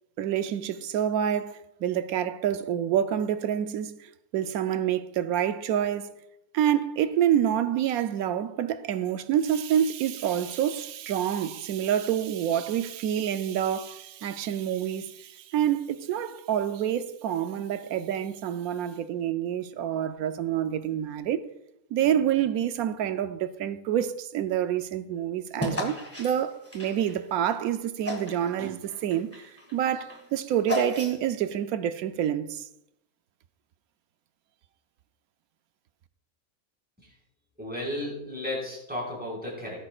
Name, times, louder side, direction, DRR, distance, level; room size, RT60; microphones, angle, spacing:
voice 1, 0.2-6.1 6.5-21.4 21.9-32.7, right 10 dB, 90° right, 1.1 m, -27 dB
sound 1, 25.6-27.6 28.0-28.5 28.8-31.4, left 1 dB, 10° left, 1.8 m, -34 dB
voice 2, 37.6-39.8, left 1 dB, 5° right, 4.8 m, -34 dB
17.0 x 10.0 x 2.4 m
omnidirectional pair, 1.5 m